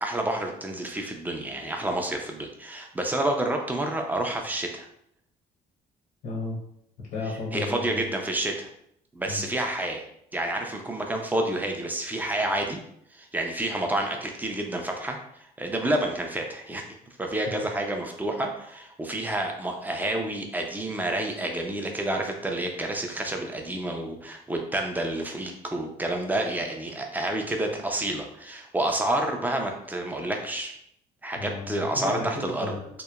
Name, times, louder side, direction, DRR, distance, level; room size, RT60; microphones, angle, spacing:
voice 1, 0.0-4.9 7.5-8.7 9.2-10.1 10.3-12.8 13.1-16.8 17.2-30.7 31.2-32.7, right 1 dB, 10° right, 2 dB, 0.4 m, -29 dB
voice 2, 6.2-6.6 7.1-8.0 9.3-9.5 31.4-33.0, left 3 dB, 65° left, -4 dB, 0.7 m, -34 dB
2.8 x 2.0 x 2.3 m, 0.71 s
cardioid pair, 110°, 17 cm